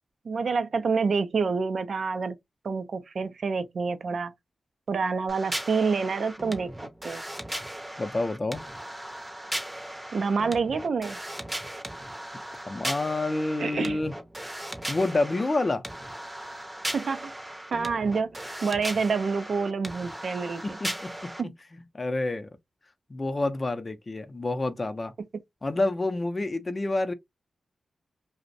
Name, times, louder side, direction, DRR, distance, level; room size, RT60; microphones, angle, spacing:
voice 1, 0.3-2.4 2.6-4.3 4.9-7.2 10.1-11.2 13.6-14.0 16.9-17.3 17.7-20.8 21.4-21.5, right 5 dB, 70° right, 0.4 m, -28 dB
sound 1, 5.3-21.4, right 1 dB, 15° right, 0.6 m, -37 dB
voice 2, 8.0-8.6 12.5-14.1 14.9-15.8 20.6-22.5 23.1-25.1 25.6-27.1, left 2 dB, 40° left, 0.5 m, -28 dB
2.5 x 2.0 x 2.5 m
cardioid pair, 50°, 0 cm